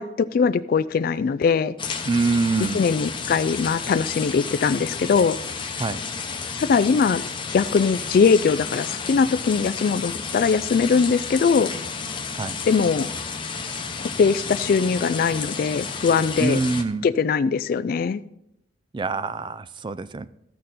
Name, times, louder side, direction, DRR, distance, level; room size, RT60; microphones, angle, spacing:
voice 1, 0.0-1.7 2.7-5.4 6.6-11.7 12.7-13.1 14.0-16.6 17.0-18.2, left 5 dB, 50° left, 13 dB, 0.3 m, -21 dB
sound 1, 1.8-16.8, left 5 dB, 25° left, 0.8 m, -32 dB
voice 2, 2.0-2.9 5.8-6.0 12.4-12.6 16.4-17.1 18.9-20.3, right 3 dB, 25° right, 14 dB, 0.4 m, -24 dB
14.0 x 6.6 x 4.1 m, 0.82 s
head